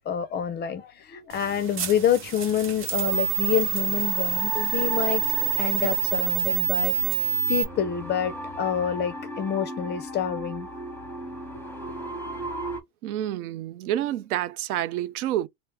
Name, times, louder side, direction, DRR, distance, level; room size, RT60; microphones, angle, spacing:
voice 1, 0.1-5.2 5.6-6.9 7.5-10.7, left 9 dB, 25° left, 0.4 m, -27 dB
sound 1, 1.3-7.6, right 11 dB, 30° right, 0.8 m, -27 dB
sound 2, 2.9-12.8, equal, 5° left, 0.8 m, -37 dB
voice 2, 13.0-15.5, right 12 dB, 75° right, 0.6 m, -28 dB
3.1 x 2.0 x 3.3 m
hypercardioid pair, 100°, 45 cm